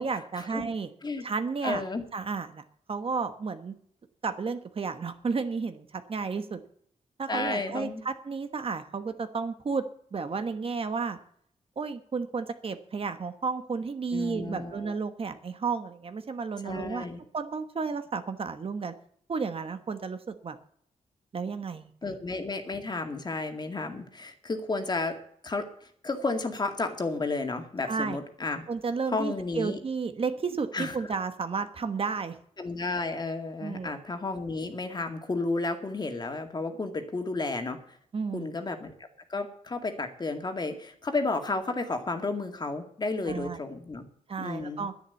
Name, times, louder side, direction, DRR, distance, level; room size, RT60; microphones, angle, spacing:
voice 1, 0.0-0.9 1.2-1.8 2.1-2.6 2.9-3.7 4.2-6.6 7.2-9.9 10.1-11.2 11.8-17.1 17.3-18.9 19.3-20.6 21.3-22.2 27.8-28.2 28.7-32.4 33.6-33.9 38.1-38.5 43.3-43.6 44.3-44.9, right 5 dB, 45° right, 9 dB, 1.2 m, -32 dB
voice 2, 1.6-2.0 7.3-8.0 14.1-15.0 16.6-17.2 22.0-25.2 25.4-25.6 26.0-28.7 29.1-29.8 30.7-30.9 32.6-37.8 38.3-38.9 39.3-44.1 44.4-44.9, left 3 dB, 30° left, 5 dB, 2.1 m, -32 dB
10.5 x 10.5 x 8.3 m, 0.65 s
wide cardioid pair, 120°, 13 cm